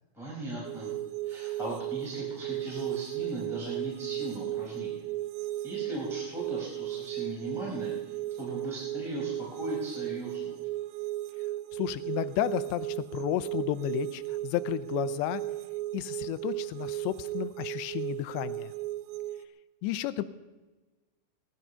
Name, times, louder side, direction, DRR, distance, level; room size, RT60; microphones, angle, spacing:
voice 1, 0.1-0.9 1.2-5.0 5.6-10.5, right 1 dB, ahead, -6 dB, 4.1 m, -38 dB
sound 1, 0.7-19.5, right 16 dB, 90° right, 2.0 m, -35 dB
voice 2, 11.7-15.4 15.9-18.7 19.8-20.2, left 14 dB, 90° left, 13 dB, 2.9 m, -32 dB
18.5 x 12.0 x 5.6 m, 1.2 s
omnidirectional pair, 5.0 m